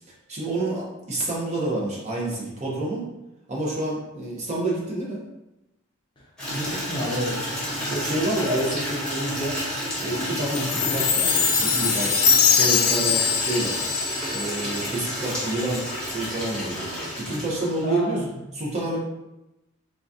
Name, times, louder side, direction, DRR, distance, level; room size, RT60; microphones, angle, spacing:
voice 1, 0.3-3.1 3.5-5.2 7.9-9.6 10.0-12.2 12.5-13.8 14.3-18.2 18.5-19.0, right 2 dB, 35° right, -4 dB, 0.7 m, -28 dB
Water tap faucet / Liquid, 6.4-18.0, equal, 5° left, 1.0 m, -31 dB
voice 2, 6.5-7.5 17.8-18.3, equal, 20° left, -5 dB, 0.6 m, -29 dB
Chime, 10.5-15.0, left 6 dB, 90° left, 0.5 m, -22 dB
3.8 x 2.3 x 2.6 m, 0.95 s
head